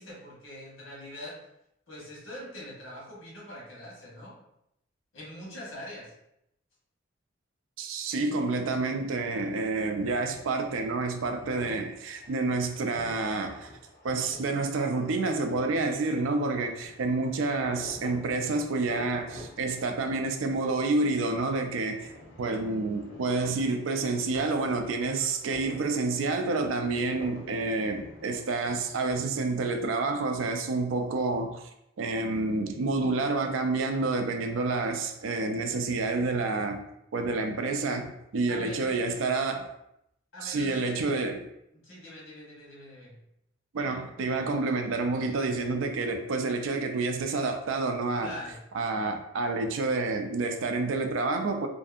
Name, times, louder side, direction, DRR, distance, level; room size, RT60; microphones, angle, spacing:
voice 1, 0.0-1.3 1.9-4.3 5.1-6.1 38.5-39.0 40.3-41.0 41.7-43.2 48.2-48.6, left 1 dB, 80° left, 1.1 m, -43 dB
voice 2, 7.8-13.7 14.0-22.1 22.4-31.6 32.0-36.8 37.1-39.7 40.4-41.5 43.7-48.3 48.7-51.7, right 3 dB, 85° right, 0.4 m, -29 dB
sound 1, 10.0-29.2, left 1 dB, 65° left, 0.6 m, -49 dB
2.6 x 2.5 x 2.4 m
head